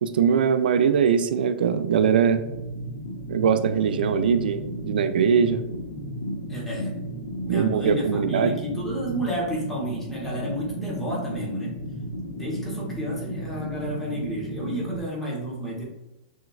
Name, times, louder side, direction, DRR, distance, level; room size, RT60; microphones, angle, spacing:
voice 1, 0.0-2.4 3.3-5.6 7.5-8.5, right 7 dB, 90° right, 10 dB, 0.3 m, -21 dB
sound 1, 2.0-15.0, equal, 50° left, 0.8 m, -34 dB
voice 2, 6.5-6.9 7.5-11.7 12.4-15.9, right 1 dB, 5° left, -5 dB, 0.8 m, -31 dB
6.2 x 2.3 x 2.3 m, 0.95 s
supercardioid pair, 180°, 5 cm